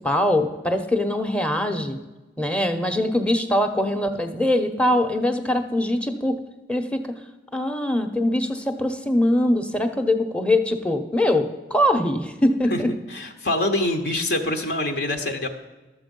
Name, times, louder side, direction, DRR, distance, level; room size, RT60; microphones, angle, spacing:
voice 1, 0.0-2.0 2.4-6.4 6.7-7.1 7.5-12.9, left 1 dB, 5° left, 7 dB, 0.8 m, -22 dB
voice 2, 13.1-15.5, left 1 dB, 65° left, 4 dB, 0.9 m, -25 dB
12.5 x 7.3 x 5.3 m, 1.1 s
head